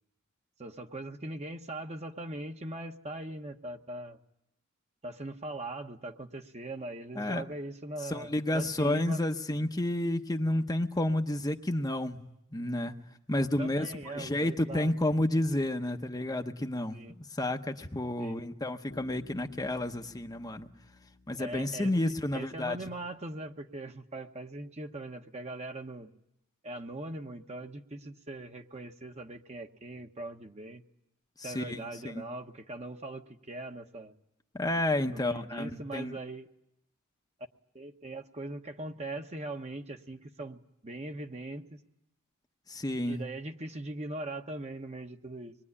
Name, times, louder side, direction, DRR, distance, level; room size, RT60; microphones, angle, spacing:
voice 1, 0.6-4.2 5.0-9.2 13.6-15.0 16.9-17.2 18.2-18.4 21.4-26.1 26.6-30.8 31.4-34.1 35.1-36.5 37.7-41.8 43.1-45.6, right 2 dB, 30° right, 5 dB, 1.3 m, -41 dB
voice 2, 8.0-12.3 12.5-12.9 13.3-20.7 21.3-22.9 31.4-32.2 34.5-36.2 42.7-43.2, left 1 dB, 20° left, 5 dB, 0.9 m, -31 dB
Bass guitar, 18.9-22.6, left 3 dB, 70° left, 1.7 m, -55 dB
25.0 x 22.0 x 9.8 m, 0.82 s
head